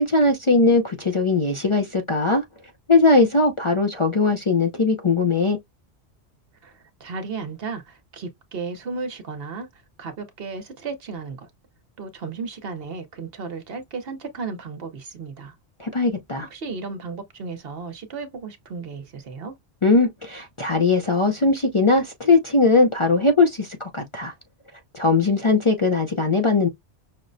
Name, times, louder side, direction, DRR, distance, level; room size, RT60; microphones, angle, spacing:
voice 1, 0.0-2.4 2.9-5.6 15.8-16.5 19.8-24.3 24.9-26.7, left 3 dB, 35° left, 0.5 m, -19 dB
voice 2, 6.6-9.7 10.0-11.5 12.0-15.5 16.5-19.6, right 4 dB, 60° right, 1.0 m, -34 dB
5.9 x 2.1 x 2.6 m
omnidirectional pair, 1.2 m